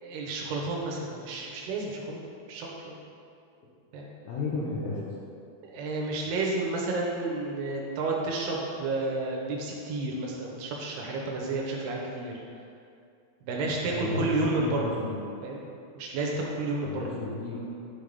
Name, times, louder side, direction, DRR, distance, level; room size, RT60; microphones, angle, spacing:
voice 1, 0.0-2.2 2.5-3.0 3.9-4.1 5.6-12.3 13.4-15.0 15.4-15.7 15.9-17.1, right 2 dB, 75° right, -2 dB, 2.8 m, -31 dB
voice 2, 4.2-5.1 13.9-15.2 16.8-17.6, left 3 dB, 70° left, -7 dB, 2.3 m, -33 dB
11.0 x 5.5 x 3.5 m, 2.5 s
omnidirectional pair, 5.1 m